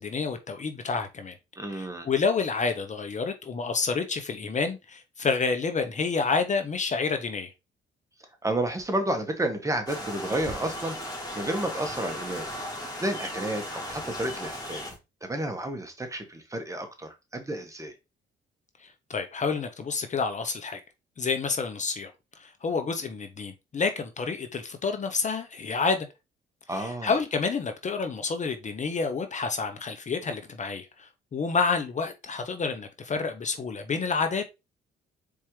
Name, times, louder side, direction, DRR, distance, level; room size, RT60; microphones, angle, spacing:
voice 1, 0.0-1.4 1.7-7.5 18.8-20.8 21.2-22.1 22.4-26.1 26.7-34.5, left 4 dB, 35° left, 0.7 m, -29 dB
voice 2, 1.6-2.1 8.4-11.0 11.3-12.5 13.0-14.8 15.2-17.9 26.7-27.1, right 1 dB, 15° right, 1.1 m, -31 dB
sound 1, 9.9-15.0, equal, 20° left, 2.1 m, -36 dB
4.3 x 3.5 x 3.1 m
cardioid pair, 90°, 20 cm